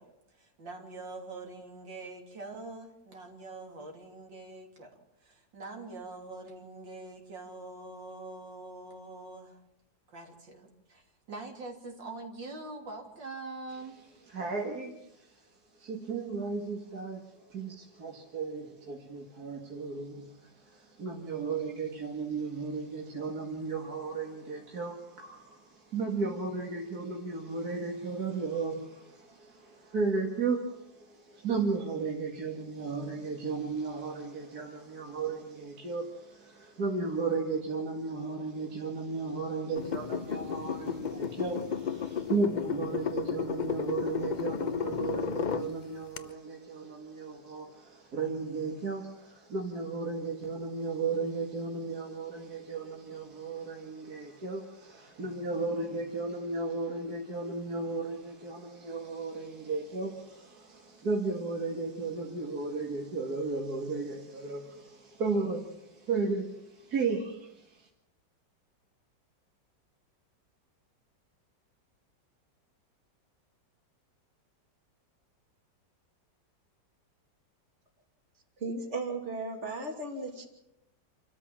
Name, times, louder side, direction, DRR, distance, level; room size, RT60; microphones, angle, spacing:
voice 1, 0.0-9.6 10.1-14.0, right 2 dB, 80° right, 2 dB, 3.8 m, -44 dB
voice 2, 14.3-15.5 15.7-67.9, right 4 dB, 55° right, 0 dB, 2.5 m, -35 dB
sound 1, 39.8-45.7 46.2-46.3, left 7 dB, 50° left, 0.5 m, -33 dB
voice 3, 78.6-80.5, right 3 dB, 40° right, 3 dB, 3.0 m, -35 dB
28.5 x 13.5 x 7.4 m, 0.83 s
omnidirectional pair, 2.0 m